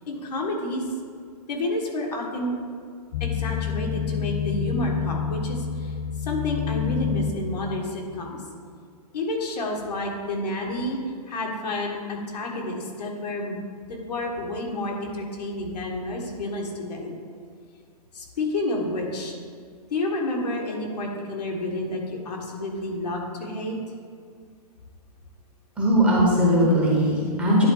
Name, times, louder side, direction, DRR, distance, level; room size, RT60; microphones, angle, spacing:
voice 1, 0.1-0.8 1.5-2.6 3.2-8.4 9.1-11.0 11.3-13.6 13.9-17.1 18.1-19.3 19.9-23.8, left 1 dB, 80° left, 0 dB, 1.7 m, -30 dB
sound 1, 3.1-7.4, left 8 dB, 50° left, 0.6 m, -28 dB
voice 2, 25.8-27.7, equal, 5° right, -5 dB, 1.0 m, -19 dB
10.5 x 3.9 x 3.9 m, 2.1 s
hypercardioid pair, 160°, 21 cm